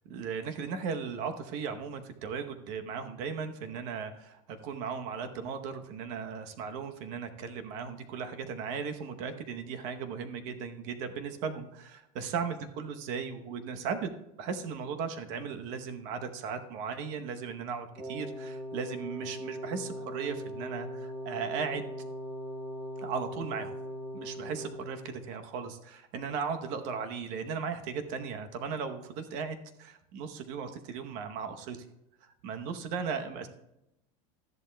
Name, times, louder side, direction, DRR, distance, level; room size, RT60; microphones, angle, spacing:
voice 1, 0.1-14.1 14.4-21.8 23.0-23.7 24.1-31.9 32.2-33.5, right 6 dB, 45° right, 8 dB, 0.9 m, -37 dB
Wind instrument woodwind instrument, 17.9-25.3, equal, 5° right, 2.4 m, -40 dB
13.0 x 10.5 x 2.2 m, 0.86 s
supercardioid pair, 170°, 17 cm